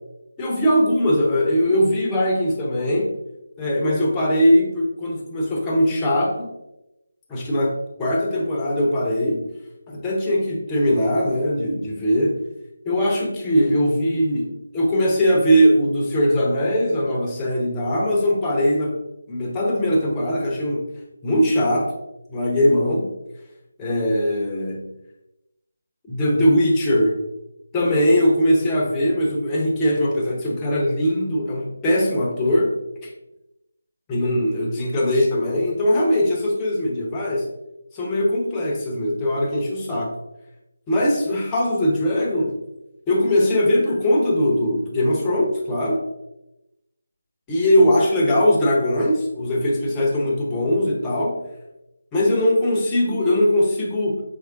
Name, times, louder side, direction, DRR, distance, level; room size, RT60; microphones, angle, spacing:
voice 1, 0.4-3.1 3.6-6.5 7.3-9.5 9.9-12.4 12.9-18.9 19.3-20.9 21.2-21.9 22.3-23.1 23.8-24.9 26.1-27.2 27.7-32.7 34.1-37.5 37.9-40.1 40.9-42.5 43.1-46.0 47.5-51.4 52.1-54.2, equal, 15° left, -3 dB, 0.8 m, -20 dB
5.5 x 3.1 x 2.4 m, 0.92 s
figure-of-eight pair, 155°, 0 cm